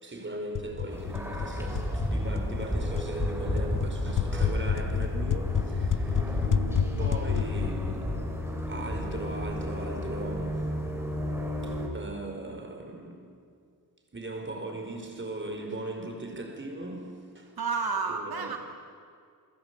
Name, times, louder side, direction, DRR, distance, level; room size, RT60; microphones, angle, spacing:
voice 1, 0.0-6.5 7.0-8.2 8.7-10.7 11.6-13.3 14.1-17.5 18.1-18.6, right 2 dB, 30° right, 4.9 m, -38 dB
sound 1, 0.5-9.2, left 8 dB, 60° left, 0.8 m, -31 dB
sound 2, 0.9-11.9, equal, 5° right, 4.0 m, -32 dB
voice 2, 17.6-18.6, right 5 dB, 80° right, 1.8 m, -31 dB
29.0 x 22.0 x 8.5 m
wide cardioid pair, 135°, 36 cm